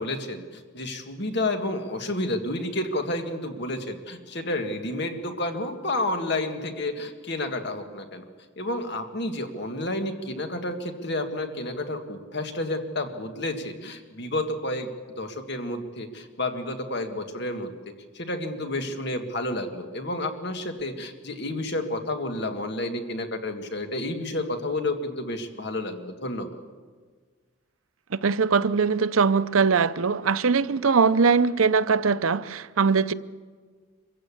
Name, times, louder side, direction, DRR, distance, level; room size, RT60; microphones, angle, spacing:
voice 1, 0.0-8.2 8.6-14.9 15.2-17.7 18.1-26.6, left 1 dB, 55° left, 1.9 m, -30 dB
voice 2, 28.1-33.1, right 5 dB, 85° right, 0.7 m, -21 dB
24.5 x 15.5 x 8.6 m
head